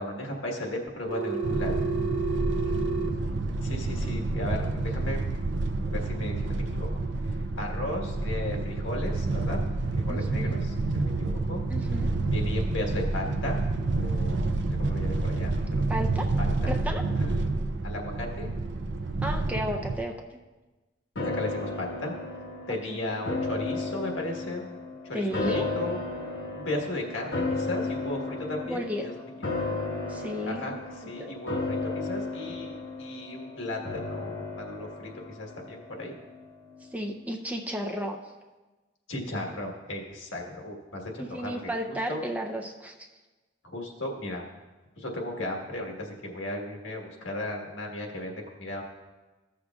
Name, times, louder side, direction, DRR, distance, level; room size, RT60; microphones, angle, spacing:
voice 1, 0.0-1.9 2.6-5.2 5.8-6.9 7.3-9.6 9.9-11.6 12.2-13.6 13.9-15.8 16.4-16.7 17.2-17.4 17.8-18.5 21.2-22.1 22.7-24.8 25.0-26.0 26.5-29.1 29.6-29.7 30.4-36.2 39.1-42.2 43.6-44.4 45.0-48.8, left 1 dB, 85° left, 0 dB, 1.4 m, -36 dB
Telephone, 1.1-3.1, right 4 dB, 80° right, 0.8 m, -30 dB
sound 1, 1.4-20.0, right 2 dB, 60° right, 0.5 m, -29 dB
voice 2, 10.1-10.6 11.7-12.1 15.9-16.3 16.7-17.0 19.2-20.4 22.7-23.0 25.1-25.6 28.6-29.0 30.1-30.8 31.2-31.3 36.9-38.2 41.2-42.9, equal, 10° right, 2 dB, 0.5 m, -33 dB
sound 2, 21.2-36.5 36.8-36.9, left 3 dB, 65° left, 1.1 m, -34 dB
15.0 x 6.5 x 2.4 m, 1.2 s
head